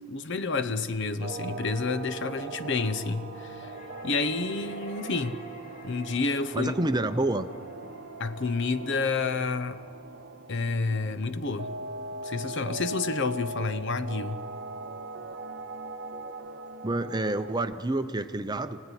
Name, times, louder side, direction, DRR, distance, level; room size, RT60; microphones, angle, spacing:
voice 1, 0.1-3.7 4.0-5.4 5.8-6.7 8.2-9.8 10.5-11.7 12.2-14.4, left 4 dB, 55° left, 0.9 m, -29 dB
sound 1, 1.2-17.8, right 3 dB, 50° right, 0.9 m, -40 dB
sound 2, 1.5-9.9, left 2 dB, 40° left, 3.6 m, -51 dB
voice 2, 6.5-7.5 16.8-18.8, right 2 dB, 20° right, 0.7 m, -28 dB
24.5 x 16.5 x 9.9 m
head